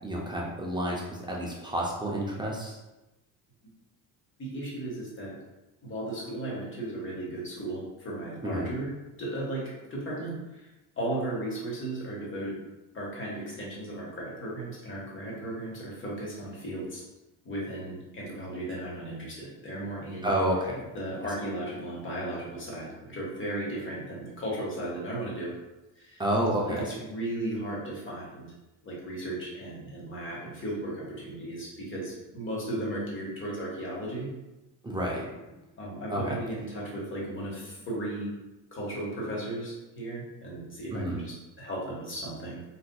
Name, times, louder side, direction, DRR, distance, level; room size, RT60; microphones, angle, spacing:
voice 1, 0.0-2.8 8.4-8.7 20.2-20.9 26.2-26.8 34.8-35.3 36.1-36.4 40.9-41.2, right 1 dB, 10° right, -3 dB, 0.4 m, -29 dB
voice 2, 4.4-5.3 5.8-8.9 9.2-10.7 11.0-17.0 17.4-20.4 20.9-25.6 26.0-26.2 26.6-28.5 28.8-34.3 35.8-38.3 38.7-42.6, right 1 dB, 30° left, -4 dB, 1.3 m, -35 dB
4.1 x 2.6 x 2.2 m, 1.0 s
cardioid pair, 110°, 40 cm